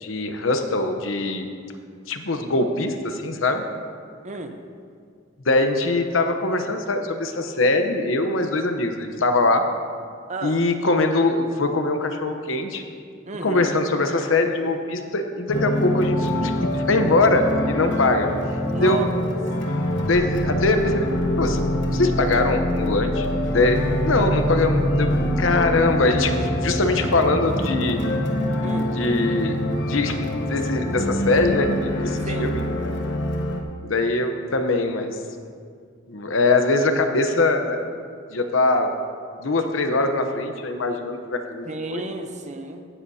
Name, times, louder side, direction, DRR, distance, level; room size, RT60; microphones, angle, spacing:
voice 1, 0.0-1.4 2.1-3.6 5.4-9.6 10.4-12.8 13.4-18.3 18.8-19.0 20.1-21.1 21.4-21.6 21.9-25.1 25.4-28.0 28.7-29.5 29.9-32.9 33.8-35.2 36.1-37.8 38.3-39.0 39.4-42.0, left 2 dB, 85° left, 6 dB, 0.9 m, -22 dB
voice 2, 4.2-4.6 10.3-10.6 13.3-13.7 18.6-19.1 28.6-29.0 32.2-32.6 41.7-42.8, right 2 dB, 35° right, 5 dB, 0.8 m, -32 dB
sound 1, 15.5-33.6, equal, 65° left, 1.2 m, -25 dB
15.5 x 10.0 x 2.8 m, 2.2 s
head